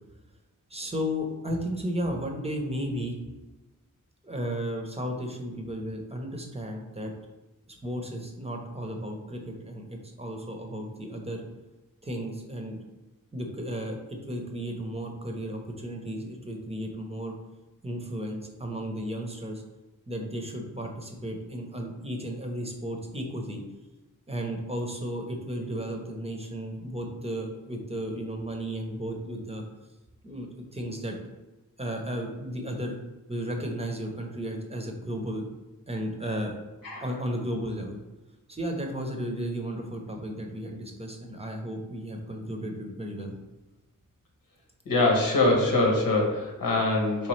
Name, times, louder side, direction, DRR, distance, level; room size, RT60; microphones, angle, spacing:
voice 1, 0.7-3.2 4.2-7.1 7.7-11.4 12.0-12.8 13.3-14.0 14.3-17.3 17.8-19.6 20.1-23.6 24.3-29.6 30.2-31.2 31.8-33.0 33.3-35.4 35.9-36.6 37.0-38.0 38.5-43.4, equal, 20° right, 2 dB, 0.7 m, -34 dB
voice 2, 44.9-47.3, left 2 dB, 85° left, -1 dB, 1.1 m, -23 dB
4.2 x 3.3 x 3.1 m, 1.1 s
wide cardioid pair, 85°, 33 cm